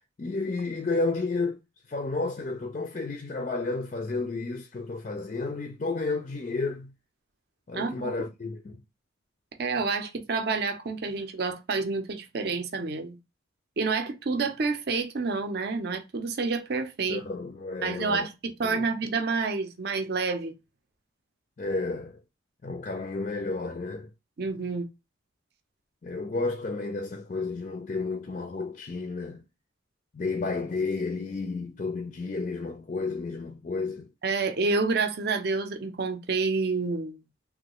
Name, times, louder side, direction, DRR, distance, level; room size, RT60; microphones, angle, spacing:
voice 1, 0.2-1.6 1.9-6.9 7.7-8.8 17.1-18.3 18.6-18.9 21.6-22.2 22.6-24.1 26.0-29.4 30.1-34.1, left 3 dB, 40° left, 0.4 m, -31 dB
voice 2, 7.7-8.1 9.6-13.2 13.8-17.2 17.8-20.5 24.4-24.9 34.2-37.2, right 4 dB, 55° right, 0.5 m, -28 dB
3.2 x 2.3 x 2.9 m
head